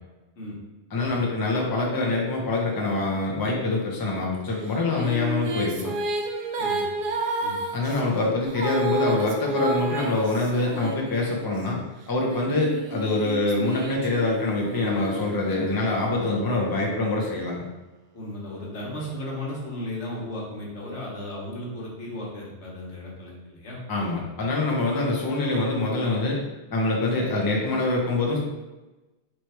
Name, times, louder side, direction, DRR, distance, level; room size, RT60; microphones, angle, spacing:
voice 1, 0.9-5.9 7.7-11.8 12.1-17.6 23.9-26.4 26.7-28.4, left 2 dB, 25° left, -2 dB, 0.6 m, -25 dB
Female singing, 4.6-11.6 12.3-16.0, right 2 dB, 60° right, 0.6 m, -31 dB
voice 2, 6.6-7.1 7.4-7.6 18.1-23.8, left 1 dB, 75° left, -4 dB, 1.5 m, -35 dB
3.3 x 3.1 x 4.3 m, 1.1 s
omnidirectional pair, 1.2 m